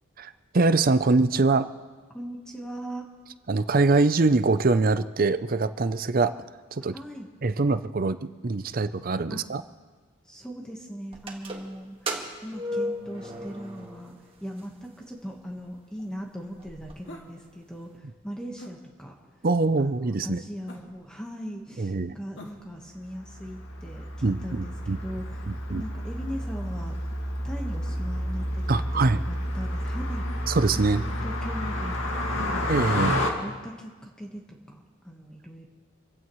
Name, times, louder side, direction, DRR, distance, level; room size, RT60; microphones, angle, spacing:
voice 1, 0.2-1.7 3.5-6.3 6.7-6.9 7.4-9.6 19.4-20.4 21.8-22.2 24.2-25.0 25.5-25.8 28.7-29.2 30.5-31.0 32.7-33.2, right 3 dB, 45° right, 12 dB, 0.6 m, -23 dB
voice 2, 2.1-3.1 6.9-7.3 9.3-9.4 10.2-19.4 19.7-25.4 25.7-27.0 27.4-30.5 30.9-32.0 32.3-32.6 33.0-34.4 34.7-35.7, equal, 5° left, 0 dB, 1.3 m, -39 dB
sound 1, 11.1-14.3 14.6-14.7 15.5-15.6 16.0-16.1 16.3-16.9, equal, 25° right, 1.7 m, -34 dB
sound 2, 17.0-17.4 18.6-18.8 20.7-21.1 22.4-22.7, left 1 dB, 60° left, 2.1 m, -45 dB
Car passing by, 23.2-33.3, equal, 85° left, 2.0 m, -30 dB
26.5 x 16.0 x 3.2 m, 1.4 s
head